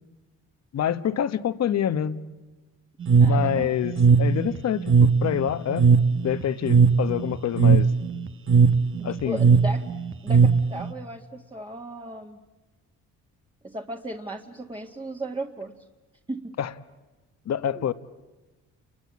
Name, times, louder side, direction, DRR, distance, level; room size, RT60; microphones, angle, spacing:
voice 1, 0.7-2.2 3.2-5.9 6.2-7.9 9.0-9.4 16.6-16.7 17.4-17.9, left 9 dB, 60° left, 1.2 m, -26 dB
sound 1, 3.0-10.9, right 5 dB, 45° right, 1.1 m, -19 dB
voice 2, 3.2-3.7 9.0-9.9 10.2-12.4 13.6-15.7 16.3-16.5 17.6-17.9, right 2 dB, 15° right, 1.9 m, -36 dB
29.5 x 22.5 x 8.6 m
cardioid pair, 90°, 30 cm